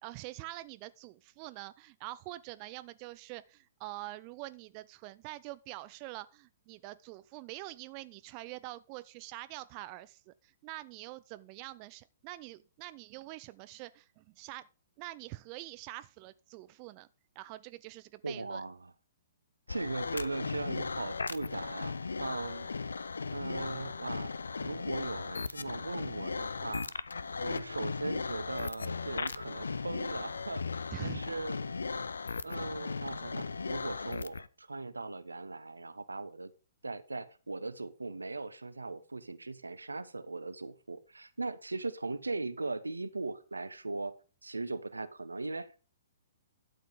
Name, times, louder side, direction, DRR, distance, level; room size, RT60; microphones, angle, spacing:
voice 1, 0.0-14.7 15.0-17.1 17.4-18.6 30.9-31.2, right 18 dB, 35° right, 0.4 m, -45 dB
voice 2, 18.2-18.9 19.7-21.9 22.2-22.7 23.3-24.3 24.6-26.9 27.4-30.6 31.0-31.6 31.9-32.1 32.4-36.5 36.8-44.1 44.4-45.8, right 3 dB, 85° right, 0.9 m, -39 dB
sound 1, 19.7-34.5, left 4 dB, 75° left, 0.6 m, -37 dB
12.5 x 7.5 x 3.6 m
figure-of-eight pair, 120°, 0 cm